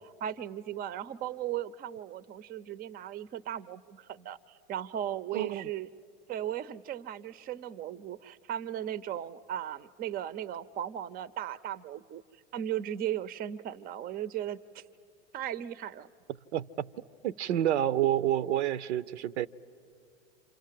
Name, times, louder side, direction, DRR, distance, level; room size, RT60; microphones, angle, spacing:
voice 1, 0.0-5.9 6.3-12.2 12.5-14.8 15.3-16.1, right 11 dB, 25° right, 17 dB, 0.6 m, -37 dB
voice 2, 5.3-5.7 16.5-16.9 17.2-19.5, right 11 dB, 80° right, 15 dB, 0.6 m, -29 dB
28.5 x 27.0 x 7.5 m, 2.4 s
hypercardioid pair, 100°, 34 cm